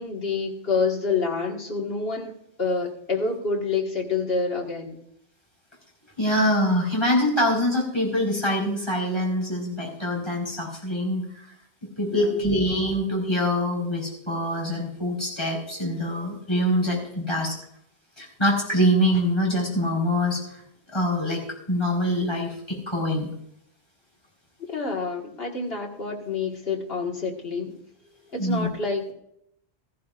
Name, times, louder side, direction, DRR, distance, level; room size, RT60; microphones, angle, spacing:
voice 1, 0.0-2.3 2.6-5.0 12.1-12.5 24.6-27.8 28.3-29.1, left 4 dB, 65° left, 0 dB, 2.1 m, -28 dB
voice 2, 6.2-11.4 12.0-17.5 18.2-20.4 20.9-21.4 21.7-23.3 28.4-28.7, equal, 25° left, -3 dB, 4.6 m, -24 dB
15.0 x 15.0 x 2.5 m, 0.73 s
omnidirectional pair, 1.1 m